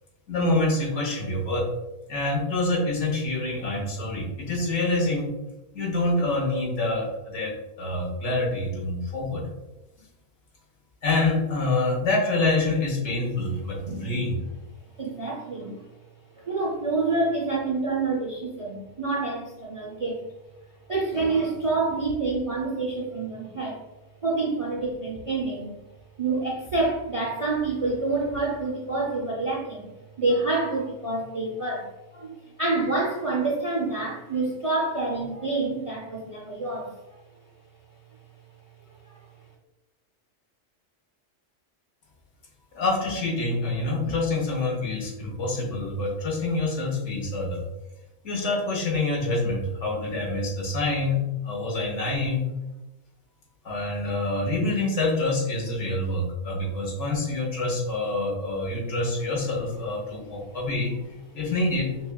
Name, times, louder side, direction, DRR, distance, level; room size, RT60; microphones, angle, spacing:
voice 1, 0.3-1.7 2.1-5.3 5.7-9.5 11.0-14.4 42.7-47.6 48.2-52.4 53.6-60.9 61.3-61.9, left 2 dB, 75° left, -2 dB, 1.3 m, -26 dB
voice 2, 13.9-14.2 15.0-15.9 16.3-20.2 20.9-23.8 24.2-25.8 26.2-29.9 30.2-37.0 39.1-39.3, right 3 dB, 45° right, -4 dB, 0.4 m, -27 dB
6.0 x 2.3 x 2.2 m, 1.0 s
omnidirectional pair, 1.3 m